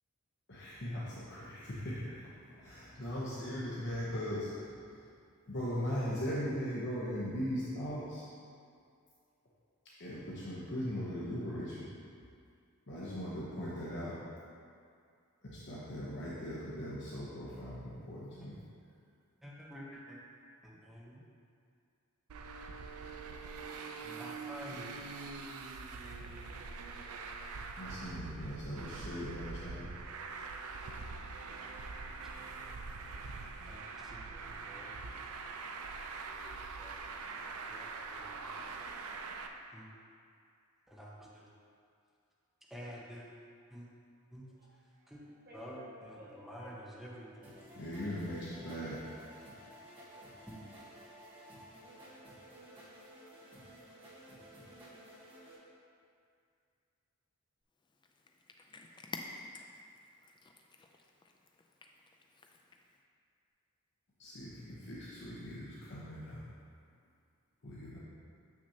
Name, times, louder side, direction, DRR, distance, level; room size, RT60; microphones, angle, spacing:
voice 1, 0.5-5.0 5.5-8.2 10.0-11.9 12.9-14.1 15.4-18.6 27.8-29.9 47.8-49.0 64.2-66.4 67.6-68.0, equal, 55° left, -8 dB, 1.0 m, -39 dB
voice 2, 19.4-20.2 20.6-21.2 24.0-24.9 25.9-26.1 32.2-32.3 33.1-33.2 33.6-35.2 36.3-37.0 37.4-38.6 39.7-39.9 40.9-41.5 42.7-43.3 43.7-43.9 44.3-44.4 45.1-45.2 45.5-48.2 50.2-50.3, equal, ahead, -6 dB, 0.9 m, -50 dB
Traffic noise roadway noise, 22.3-39.5, right 4 dB, 75° right, 0.4 m, -44 dB
voice 3, 44.6-47.3 51.0-51.5, equal, 40° right, -5 dB, 1.2 m, -57 dB
sound 1, 47.4-55.6, right 1 dB, 25° right, 1.3 m, -54 dB
Cat, 57.8-63.0, left 3 dB, 20° left, 0.3 m, -51 dB
6.8 x 6.1 x 2.8 m, 2.3 s
head